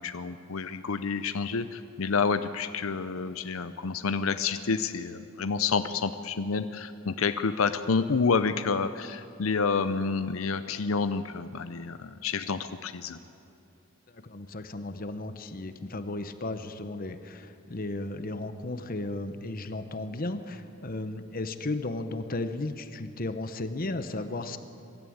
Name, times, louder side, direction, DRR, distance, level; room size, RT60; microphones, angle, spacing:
voice 1, 0.0-13.2, left 5 dB, 80° left, 10 dB, 0.7 m, -29 dB
voice 2, 14.1-24.6, left 2 dB, 45° left, 10 dB, 0.9 m, -35 dB
23.5 x 13.0 x 8.7 m, 2.9 s
head